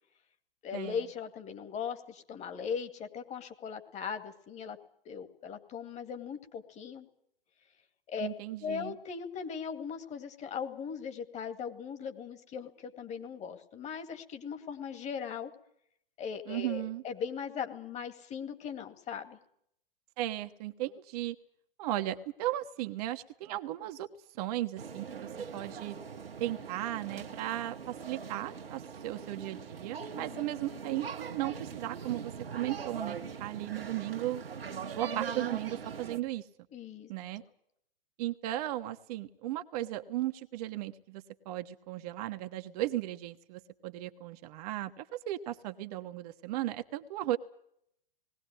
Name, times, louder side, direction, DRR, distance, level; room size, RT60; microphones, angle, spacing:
voice 1, 0.6-4.8 5.1-7.1 8.1-8.3 8.6-15.5 16.2-19.4 30.1-30.5 36.7-37.1, left 7 dB, 25° left, 8 dB, 2.2 m, -39 dB
voice 2, 8.2-8.9 16.5-17.0 20.2-21.4 21.8-24.1 24.3-26.0 26.4-34.4 34.9-36.5 37.1-37.4 38.2-47.4, right 14 dB, 40° right, 8 dB, 1.2 m, -36 dB
sound 1, 24.8-36.2, right 6 dB, 75° right, 1.7 m, -41 dB
20.0 x 17.5 x 9.4 m, 0.70 s
figure-of-eight pair, 110°, 29 cm